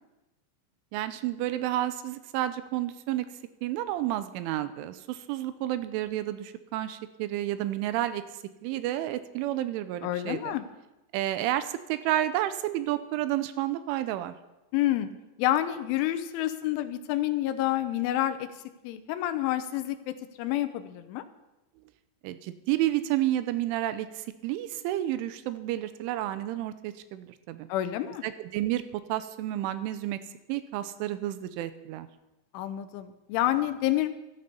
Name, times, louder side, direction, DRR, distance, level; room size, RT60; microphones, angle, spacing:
voice 1, 0.9-3.3 3.6-8.2 8.6-10.6 11.1-14.3 22.2-27.7 28.2-30.2 30.5-32.1, right 13 dB, 85° right, 12 dB, 3.2 m, -30 dB
voice 2, 10.0-10.7 14.7-15.1 15.4-18.5 18.8-21.2 27.7-28.2 32.5-34.1, left 13 dB, 85° left, 10 dB, 3.3 m, -28 dB
14.0 x 13.5 x 5.3 m, 0.99 s
omnidirectional pair, 5.5 m